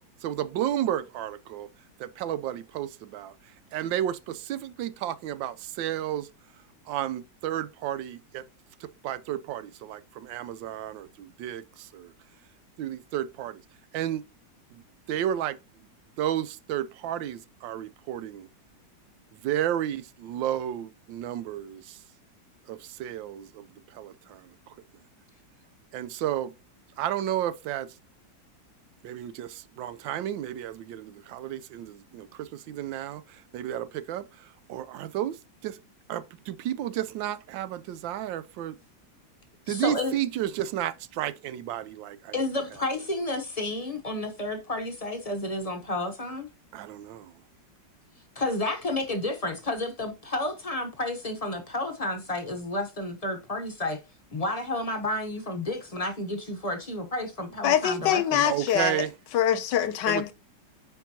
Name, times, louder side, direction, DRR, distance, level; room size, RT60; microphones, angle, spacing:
voice 1, 0.2-1.7 2.0-3.3 3.7-6.3 6.9-8.4 8.8-12.1 12.8-13.6 13.9-14.2 14.7-14.8 15.1-15.6 16.2-18.5 19.3-22.0 22.7-23.7 23.9-24.5 25.9-26.5 27.0-27.9 29.0-35.4 35.6-35.8 36.1-38.8 39.7-42.3 46.7-47.3 58.4-59.1 60.1-60.2, right 11 dB, 80° right, 1.3 m, -32 dB
voice 2, 39.7-40.1 42.3-46.5 48.4-54.0 54.3-58.4, left 2 dB, 35° left, 0.6 m, -31 dB
voice 3, 57.6-59.0 59.3-60.3, left 10 dB, 75° left, 1.2 m, -24 dB
9.3 x 4.6 x 2.8 m
omnidirectional pair, 2.0 m